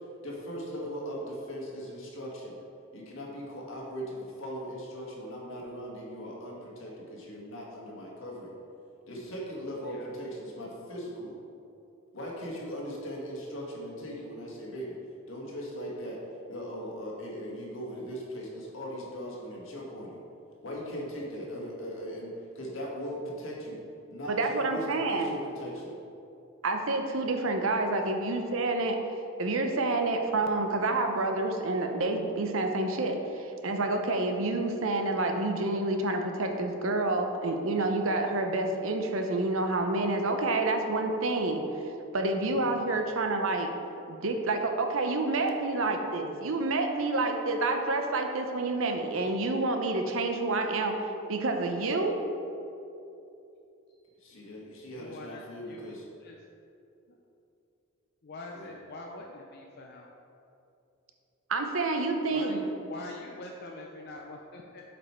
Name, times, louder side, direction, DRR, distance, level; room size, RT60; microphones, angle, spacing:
voice 1, 0.2-2.6 2.9-8.5 9.1-11.3 12.1-15.0 15.3-16.2 16.5-20.2 20.6-23.8 24.1-26.0 54.2-56.0 58.5-58.8, equal, 65° left, -3 dB, 1.7 m, -39 dB
voice 2, 24.3-25.3 26.6-29.0 29.4-41.6 42.1-43.7 44.1-50.9 51.3-52.1 61.5-62.7, right 2 dB, 70° right, 4 dB, 0.8 m, -28 dB
voice 3, 54.9-56.0 56.2-56.4 58.2-60.1 62.3-62.6 62.9-65.0, left 2 dB, 50° left, 0 dB, 0.5 m, -44 dB
7.7 x 5.2 x 4.4 m, 2.8 s
head